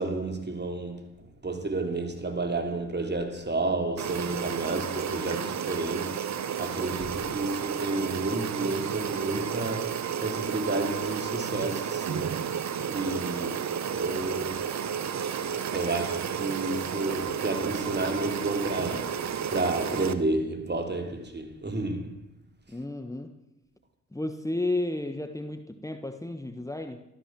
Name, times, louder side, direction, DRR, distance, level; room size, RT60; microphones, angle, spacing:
voice 1, 0.0-14.7 15.7-22.2, right 2 dB, 35° right, 3.4 m, -31 dB
sound 1, 4.0-20.1, right 8 dB, 60° right, 1.2 m, -32 dB
voice 2, 22.7-23.4 24.1-27.0, left 2 dB, 10° left, 1.3 m, -32 dB
14.0 x 13.5 x 7.6 m
supercardioid pair, 45°, 30 cm